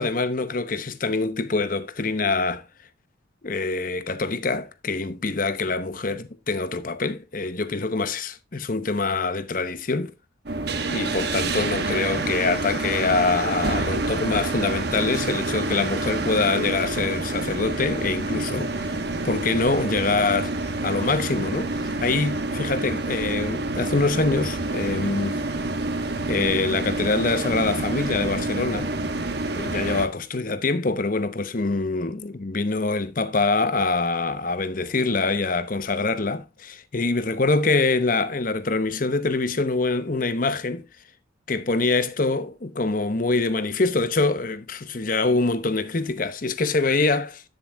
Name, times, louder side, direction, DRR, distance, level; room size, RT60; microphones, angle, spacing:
voice 1, 0.0-2.6 3.4-10.1 10.9-19.0 19.2-20.5 20.8-25.4 26.3-28.9 29.5-40.9 41.5-47.4, left 3 dB, 45° left, 0.8 m, -25 dB
sound 1, 10.5-30.1, right 2 dB, 55° right, 1.2 m, -28 dB
11.5 x 7.5 x 2.3 m
head